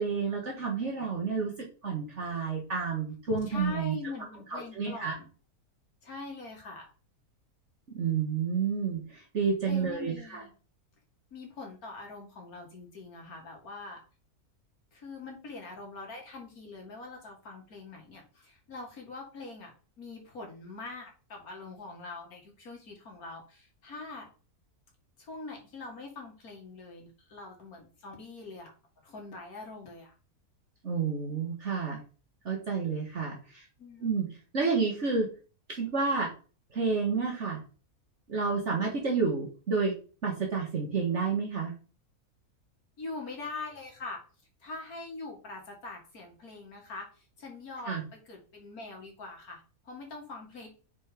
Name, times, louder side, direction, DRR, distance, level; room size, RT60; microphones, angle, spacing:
voice 1, 0.0-3.9 4.5-5.1 7.9-10.4 30.8-32.0 32.4-33.6 34.0-34.3 34.5-35.3 35.7-36.3 36.7-37.6 38.3-39.9 40.2-41.7 47.8-48.0, right 5 dB, 50° right, -1 dB, 1.6 m, -30 dB
voice 2, 3.5-5.3 6.0-6.9 9.7-10.5 11.3-14.0 14.9-19.7 20.0-24.3 25.2-28.7 29.0-30.1 33.8-34.2 43.0-44.2 44.6-50.7, left 3 dB, 70° left, 0 dB, 2.3 m, -43 dB
5.3 x 4.4 x 5.1 m, 0.37 s
omnidirectional pair, 1.6 m